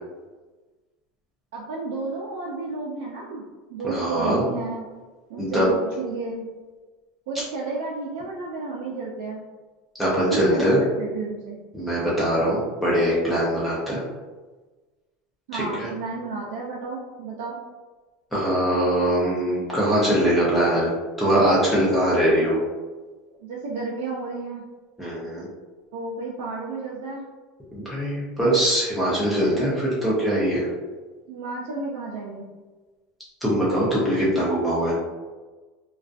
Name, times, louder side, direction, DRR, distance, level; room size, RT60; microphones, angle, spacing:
voice 1, 1.5-3.4 3.7-4.8 5.3-6.4 7.3-9.4 10.3-11.6 15.5-17.6 23.4-24.6 25.9-27.2 31.3-32.4, right 3 dB, 90° right, -4 dB, 0.4 m, -32 dB
voice 2, 3.8-4.4 5.4-5.7 10.0-10.8 11.7-14.0 15.5-15.9 18.3-20.9 21.2-22.6 25.0-25.5 27.7-30.7 33.4-34.9, right 1 dB, 5° left, -8 dB, 0.4 m, -22 dB
2.4 x 2.3 x 2.4 m, 1.3 s
supercardioid pair, 180°, 0 cm